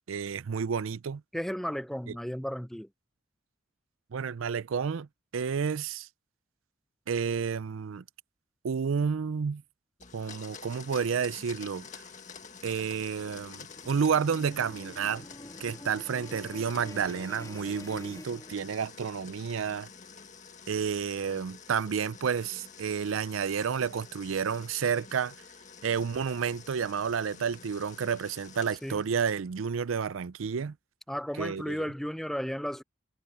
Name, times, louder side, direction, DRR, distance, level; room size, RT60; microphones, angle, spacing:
voice 1, 0.1-1.2 2.1-2.2 4.1-5.1 5.3-6.1 7.1-8.0 8.6-9.6 10.1-12.0 12.6-15.2 15.6-19.9 20.7-25.3 25.8-30.7 31.4-31.9, right 6 dB, 75° right, 0.5 m, -30 dB
voice 2, 1.3-2.9 28.8-29.0 31.1-32.8, equal, ahead, 0.4 m, -34 dB
Domestic sounds home sounds, 10.0-29.2, left 6 dB, 35° left, 1.7 m, -49 dB
sound 1, 11.9-19.1, left 1 dB, 15° left, 1.9 m, -48 dB
head